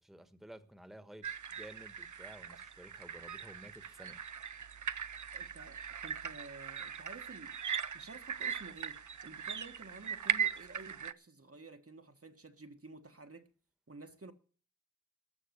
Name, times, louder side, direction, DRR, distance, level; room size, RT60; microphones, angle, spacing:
voice 1, 0.0-1.2 1.5-4.2, right 1 dB, ahead, 1.3 m, -53 dB
sound 1, 1.2-11.1, right 7 dB, 90° right, 0.6 m, -39 dB
voice 2, 5.3-7.6 7.9-13.5 13.9-14.3, right 3 dB, 50° right, 1.4 m, -52 dB
14.0 x 6.5 x 9.4 m
wide cardioid pair, 45°, 29 cm